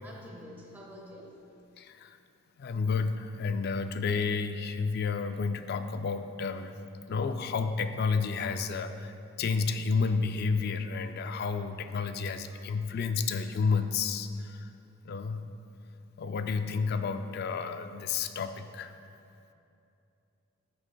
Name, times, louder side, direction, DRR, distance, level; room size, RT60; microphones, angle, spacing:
voice 1, 0.0-1.4 12.5-12.9, equal, 10° right, -3 dB, 0.8 m, -48 dB
voice 2, 1.8-2.2 2.6-6.7 7.1-9.1 9.4-14.7 15.1-15.4 16.2-18.9, left 5 dB, 50° left, 9 dB, 0.3 m, -31 dB
12.5 x 6.3 x 2.3 m, 2.7 s
head